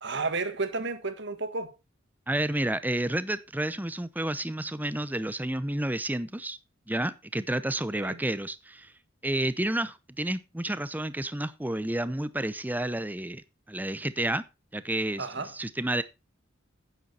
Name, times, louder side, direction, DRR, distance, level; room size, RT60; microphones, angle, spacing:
voice 1, 0.0-1.7 8.0-8.2 15.2-15.5, right 3 dB, 60° right, 1.7 m, -32 dB
voice 2, 2.3-6.6 6.9-8.9 9.2-14.4 14.7-16.0, right 1 dB, 10° right, 0.6 m, -30 dB
9.5 x 9.2 x 4.2 m
head